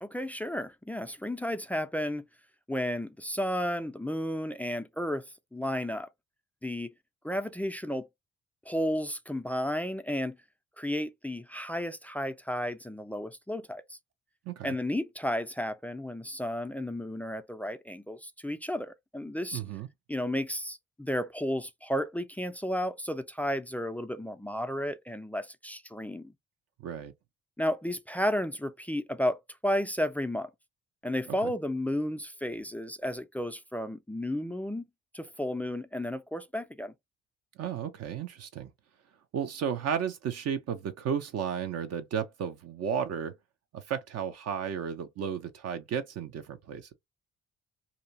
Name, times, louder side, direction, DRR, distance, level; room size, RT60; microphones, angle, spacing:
voice 1, 0.0-2.2 2.7-6.1 6.6-6.9 7.2-8.1 8.7-10.4 10.8-14.0 14.6-19.6 20.1-26.3 27.6-30.5 31.0-34.8 35.1-36.9, equal, 5° left, 0.3 m, -33 dB
voice 2, 19.5-19.9 26.8-27.1 31.4-31.5 37.6-38.7 39.3-43.3 43.7-46.9, right 8 dB, 45° right, 0.6 m, -33 dB
2.7 x 2.4 x 2.7 m
figure-of-eight pair, 40°, 34 cm